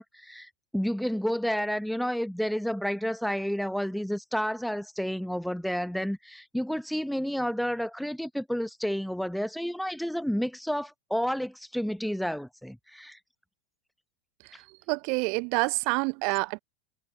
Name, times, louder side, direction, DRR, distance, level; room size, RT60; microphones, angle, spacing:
voice 1, 0.0-13.2, equal, ahead, 0.9 m, -30 dB
voice 2, 14.4-16.6, right 34 dB, 45° right, 0.6 m, -28 dB
figure-of-eight pair, 90°, 0 cm